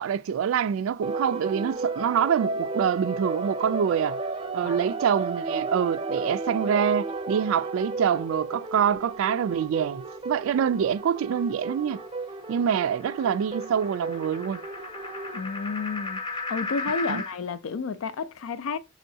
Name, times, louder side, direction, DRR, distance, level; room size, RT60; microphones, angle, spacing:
voice 1, 0.0-4.2 4.5-12.0 12.5-14.6 17.1-17.2, right 8 dB, 85° right, 0.3 m, -25 dB
sound 1, 1.0-15.4, right 3 dB, 25° right, 0.5 m, -33 dB
sound 2, 10.6-17.3, left 3 dB, 25° left, 0.6 m, -37 dB
voice 2, 15.3-18.8, left 4 dB, 90° left, 0.4 m, -31 dB
5.5 x 3.0 x 2.7 m
head